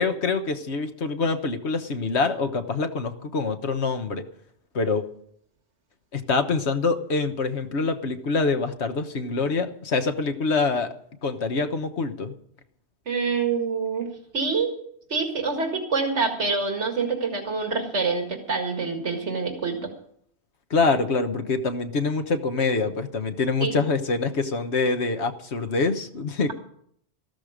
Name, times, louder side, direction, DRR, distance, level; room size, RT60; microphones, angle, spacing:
voice 1, 0.0-4.2 4.7-5.0 6.1-10.9 11.2-12.3 20.7-26.5, left 4 dB, 70° left, 8 dB, 1.5 m, -25 dB
voice 2, 13.1-14.1 14.3-14.8 15.1-19.8 23.6-23.7, right 4 dB, 80° right, 3 dB, 2.3 m, -26 dB
14.0 x 13.0 x 5.1 m, 0.67 s
omnidirectional pair, 1.2 m